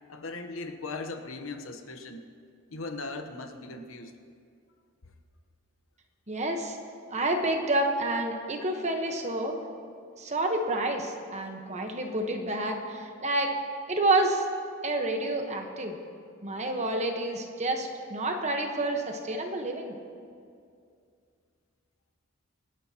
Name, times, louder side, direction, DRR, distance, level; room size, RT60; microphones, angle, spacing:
voice 1, 0.1-2.2 2.7-4.1, left 3 dB, 80° left, 7 dB, 1.0 m, -38 dB
voice 2, 6.3-6.8 7.1-9.5 10.2-13.5 13.9-14.4 14.8-15.9 16.4-19.9, right 2 dB, 35° right, 3 dB, 1.2 m, -29 dB
25.5 x 10.0 x 3.0 m, 2.3 s
head